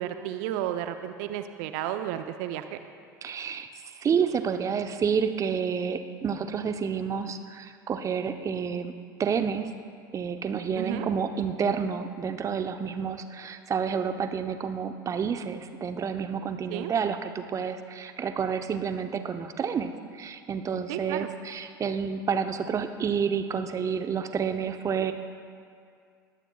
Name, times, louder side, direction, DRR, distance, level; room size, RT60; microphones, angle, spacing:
voice 1, 0.0-2.6 10.8-11.1 16.7-16.9 20.9-21.3, right 11 dB, 55° right, 8 dB, 0.7 m, -32 dB
voice 2, 3.2-8.9 9.2-9.7 10.1-25.1, right 6 dB, 30° right, 8 dB, 0.9 m, -29 dB
21.5 x 16.5 x 2.4 m, 2.3 s
figure-of-eight pair, 75°, 11 cm